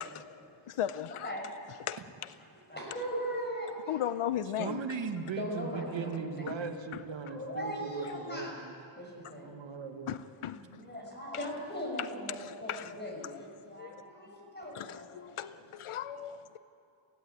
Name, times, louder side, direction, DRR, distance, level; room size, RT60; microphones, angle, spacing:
voice 1, 0.7-1.3 1.9-2.3 3.9-4.8 10.1-10.8 12.0-12.9 13.7-13.9 14.7-16.6, left 11 dB, 80° left, 13 dB, 0.7 m, -37 dB
voice 2, 1.2-1.5 2.4-4.1 5.4-6.4 7.2-8.6 9.0-9.5 10.5-15.4 15.9-16.2, equal, 20° left, -1 dB, 5.9 m, -39 dB
voice 3, 4.6-8.7 9.4-10.2, right 5 dB, 65° right, 5 dB, 1.6 m, -38 dB
23.0 x 16.5 x 9.3 m, 2.6 s
wide cardioid pair, 135°, 49 cm